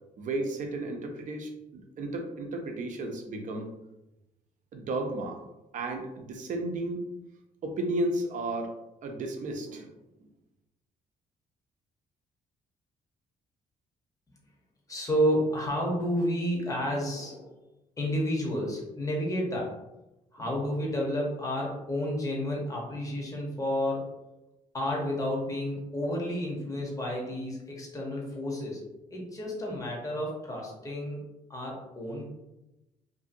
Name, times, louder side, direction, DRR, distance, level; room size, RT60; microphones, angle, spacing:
voice 1, 0.2-3.7 4.7-5.4 5.7-7.1 7.6-8.7 9.0-9.9, right 2 dB, 60° right, 3 dB, 0.5 m, -33 dB
voice 2, 14.9-17.5 18.0-19.7 20.3-24.1 24.7-28.8 29.1-32.3, equal, 20° left, -2 dB, 0.9 m, -31 dB
2.6 x 2.6 x 2.6 m, 0.95 s
cardioid pair, 85°, 15 cm